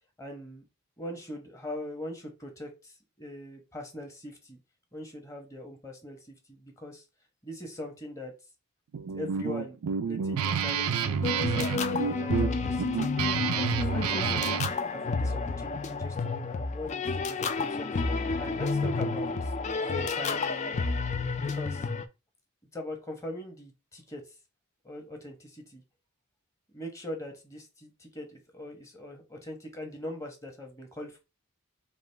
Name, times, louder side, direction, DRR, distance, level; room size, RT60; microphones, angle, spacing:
voice 1, 0.2-0.6 1.0-4.6 4.9-7.0 7.4-8.3 9.1-9.8 10.0-13.1 13.5-14.5 14.9-19.5 19.8-20.8 21.4-21.9 22.7-24.3 24.8-25.8 26.7-31.2, left 1 dB, 15° left, 2 dB, 1.0 m, -41 dB
Guitar, 8.9-14.7, right 6 dB, 85° right, 0.4 m, -29 dB
sound 1, 11.2-22.0, left 4 dB, 35° left, 0.3 m, -30 dB
4.8 x 2.4 x 3.3 m, 0.28 s
head